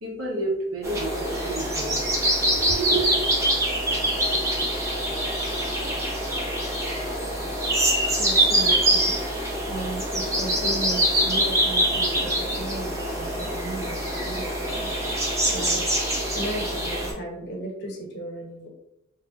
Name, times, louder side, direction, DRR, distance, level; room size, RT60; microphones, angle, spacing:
voice 1, 0.0-2.1 2.5-3.1, right 2 dB, 90° right, -1 dB, 0.7 m, -29 dB
sound 1, 0.8-17.1, right 1 dB, 15° right, 0.5 m, -24 dB
voice 2, 8.2-9.1 9.7-14.9 15.5-15.9 16.3-18.7, right 1 dB, 55° left, 2 dB, 0.6 m, -35 dB
3.1 x 2.4 x 2.3 m, 0.86 s
head